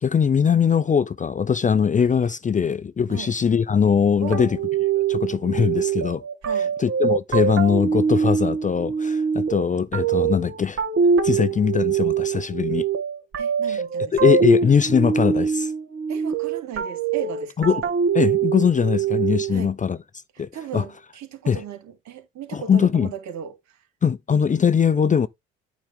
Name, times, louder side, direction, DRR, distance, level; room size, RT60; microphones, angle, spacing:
voice 1, 0.0-4.6 5.1-6.2 6.8-10.8 11.2-12.9 13.7-13.8 14.1-15.7 17.6-17.8 18.1-20.0 20.4-20.8 21.5-21.6 22.5-23.1 24.0-25.3, left 7 dB, 25° left, 0.6 m, -21 dB
voice 2, 4.2-4.6 6.4-6.8 13.4-14.2 16.1-17.9 19.5-19.8 20.3-23.8, right 9 dB, 60° right, 2.9 m, -36 dB
sound 1, 4.3-19.7, right 6 dB, 40° right, 2.2 m, -23 dB
9.1 x 5.1 x 3.6 m
hypercardioid pair, 65°, 32 cm